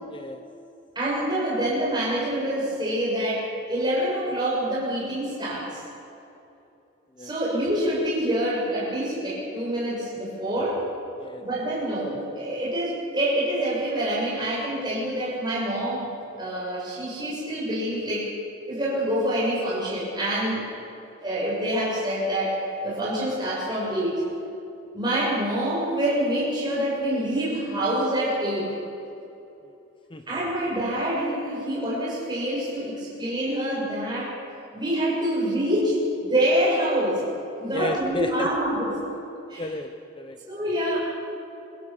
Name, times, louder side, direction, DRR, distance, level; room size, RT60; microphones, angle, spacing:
voice 1, 0.1-0.5 7.2-7.4 11.2-11.5 30.1-30.3 37.7-38.5 39.6-40.4, left 2 dB, 25° left, 7 dB, 0.7 m, -32 dB
voice 2, 0.9-5.8 7.2-10.8 11.4-16.1 16.4-18.3 18.7-20.6 21.2-24.2 24.9-28.7 30.3-34.3 34.7-37.2 37.6-39.0 39.5-39.6 40.5-41.0, right 1 dB, 20° right, -6 dB, 6.5 m, -26 dB
25.5 x 16.0 x 7.1 m, 2.9 s
head